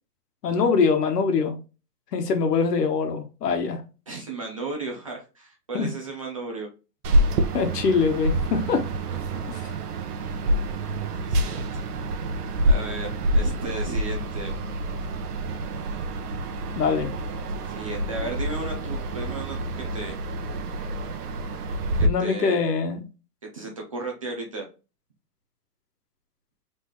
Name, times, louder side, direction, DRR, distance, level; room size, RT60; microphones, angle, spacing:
voice 1, 0.4-1.6 2.1-3.8 5.7-5.9 7.5-8.9 9.5-9.7 16.7-17.1 22.0-23.0, left 5 dB, 80° left, 1.4 m, -23 dB
voice 2, 4.1-6.7 9.3-9.7 11.3-11.6 12.7-14.5 17.7-20.2 22.0-22.7 23.4-24.7, right 3 dB, 20° right, 0.5 m, -35 dB
sound 1, 7.0-22.1, right 1 dB, 70° right, 0.9 m, -27 dB
3.9 x 3.7 x 3.0 m
hypercardioid pair, 175°, 47 cm